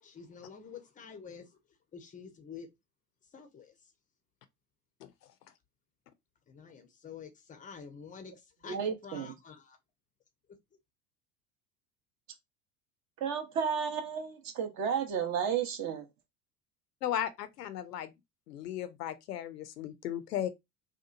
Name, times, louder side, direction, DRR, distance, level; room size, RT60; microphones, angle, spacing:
voice 1, 0.0-1.6 1.9-2.7 3.3-3.9 6.5-9.8, left 6 dB, 15° left, 0.5 m, -48 dB
voice 2, 8.7-9.3 13.2-16.0, right 7 dB, 35° right, 0.6 m, -32 dB
voice 3, 17.0-18.1 18.5-20.5, left 11 dB, 75° left, 0.6 m, -36 dB
2.8 x 2.2 x 2.4 m
figure-of-eight pair, 75°, 48 cm